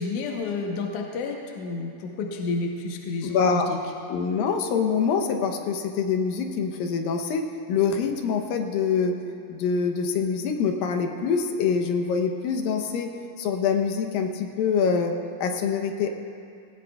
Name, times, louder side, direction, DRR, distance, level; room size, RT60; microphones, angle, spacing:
voice 1, 0.0-3.8, left 3 dB, 70° left, 1 dB, 2.3 m, -30 dB
voice 2, 3.2-3.7 4.1-7.4 7.7-9.2 9.5-13.1 13.4-16.1, left 6 dB, 85° left, 3 dB, 2.6 m, -25 dB
18.0 x 18.0 x 2.3 m, 2.4 s
omnidirectional pair, 4.0 m